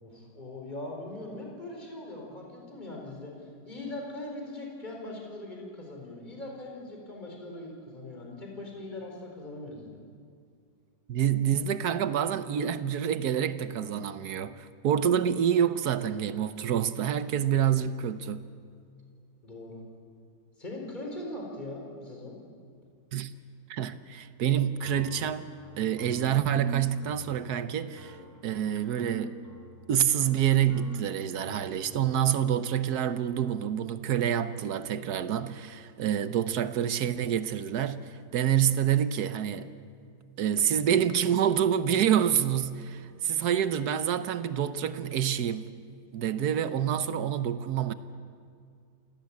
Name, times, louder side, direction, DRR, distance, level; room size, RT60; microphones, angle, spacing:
voice 1, 0.0-10.0 19.4-19.8 20.6-22.4, left 2 dB, 25° left, 4.4 m, -41 dB
voice 2, 11.1-18.5 23.1-23.3 23.7-25.5 25.8-28.2 28.4-29.4 29.9-39.7 40.4-45.7 46.1-47.9, right 9 dB, 70° right, 1.4 m, -27 dB
sound 1, 24.8-32.2, right 2 dB, 10° right, 2.7 m, -44 dB
27.5 x 17.5 x 8.5 m
omnidirectional pair, 1.9 m